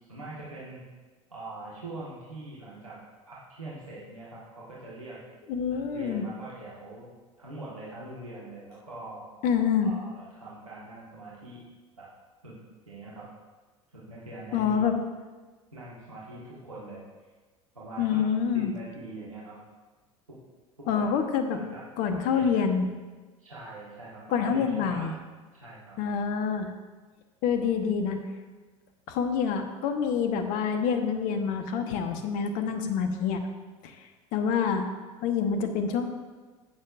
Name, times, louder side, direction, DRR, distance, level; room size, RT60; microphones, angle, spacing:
voice 1, 0.1-0.8 1.3-3.0 3.3-5.2 5.7-7.1 7.4-9.3 9.8-11.7 12.0-12.1 12.4-12.6 12.8-13.3 13.9-14.9 15.7-17.3 17.7-18.2 18.5-19.6 20.8-21.1 21.5-21.8 22.1-22.5 23.4-25.1 25.5-26.0, right 2 dB, 90° right, -8 dB, 1.6 m, -43 dB
voice 2, 5.5-6.2 9.4-9.9 14.5-15.0 18.0-18.7 20.9-21.6 22.0-22.9 24.3-25.1 26.0-26.7 27.4-28.2 29.1-33.5 33.8-33.9 34.3-34.9 35.2-36.1, left 6 dB, 55° left, 7 dB, 1.1 m, -26 dB
16.5 x 6.6 x 2.5 m, 1.3 s
figure-of-eight pair, 70°, 17 cm